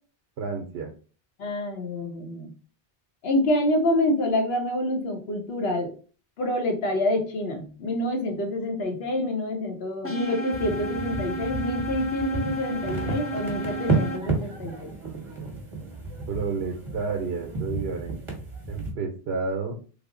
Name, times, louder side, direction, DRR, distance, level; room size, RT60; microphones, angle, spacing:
voice 1, 0.4-0.9 16.3-18.2 18.7-19.7, right 4 dB, 85° right, 3 dB, 0.8 m, -30 dB
voice 2, 1.4-2.5 3.2-5.9 6.4-14.9, left 1 dB, 75° left, 3 dB, 1.0 m, -27 dB
sound 1, 10.0-14.2, right 2 dB, 20° left, 0.4 m, -32 dB
sound 2, 10.5-18.9, right 3 dB, 30° right, 1.0 m, -32 dB
3.3 x 2.0 x 3.6 m, 0.37 s
omnidirectional pair, 1.0 m